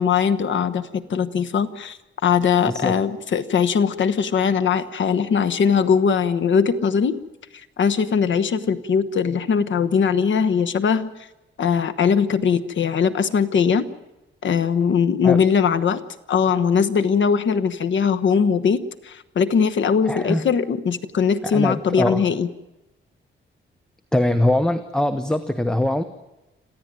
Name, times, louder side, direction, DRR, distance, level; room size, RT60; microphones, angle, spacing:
voice 1, 0.0-7.2 7.8-11.1 11.6-13.9 14.4-16.0 16.3-22.5, left 6 dB, 65° left, 10 dB, 1.2 m, -20 dB
voice 2, 2.7-3.0 15.2-15.4 20.1-20.5 21.4-22.2 24.1-26.0, left 1 dB, 5° left, 11 dB, 0.8 m, -22 dB
26.5 x 15.0 x 9.3 m, 0.99 s
wide cardioid pair, 145°, 21 cm